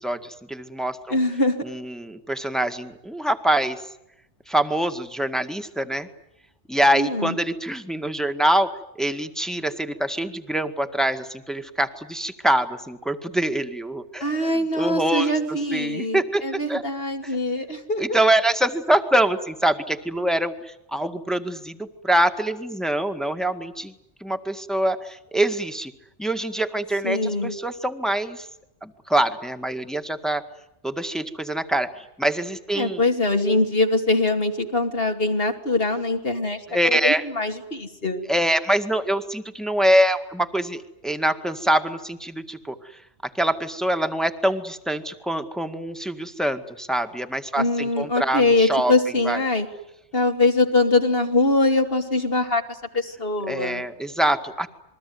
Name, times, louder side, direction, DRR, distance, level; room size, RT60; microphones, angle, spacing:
voice 1, 0.0-1.2 1.6-3.8 4.5-6.1 6.7-16.8 17.2-17.4 18.0-23.9 24.2-25.9 26.2-28.5 28.8-30.4 30.8-33.0 36.7-37.2 38.3-42.8 43.4-48.9 49.2-49.4 53.5-54.7, right 1 dB, ahead, 7 dB, 1.8 m, -24 dB
voice 2, 1.1-1.6 6.9-7.3 14.2-18.2 27.0-27.5 32.8-36.6 36.9-38.3 47.6-49.7 50.1-53.8, left 2 dB, 55° left, 4 dB, 2.9 m, -23 dB
27.5 x 22.0 x 9.6 m, 0.82 s
omnidirectional pair, 1.2 m